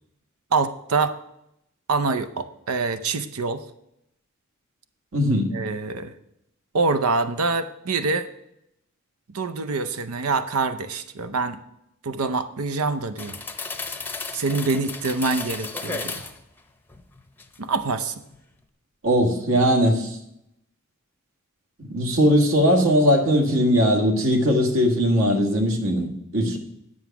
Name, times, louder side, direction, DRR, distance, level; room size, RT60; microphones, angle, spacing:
voice 1, 0.5-1.1 1.9-3.6 5.5-6.1 6.7-8.3 9.3-11.6 12.0-13.4 14.3-16.3 17.6-18.1, right 4 dB, 90° right, 11 dB, 0.6 m, -25 dB
voice 2, 5.1-5.5 19.0-20.2 21.8-26.6, equal, 65° right, 4 dB, 1.8 m, -20 dB
sound 1, 13.2-16.4 16.9-17.8 18.2-18.4, left 4 dB, 10° left, 0.7 m, -34 dB
9.6 x 7.1 x 5.9 m, 0.80 s
head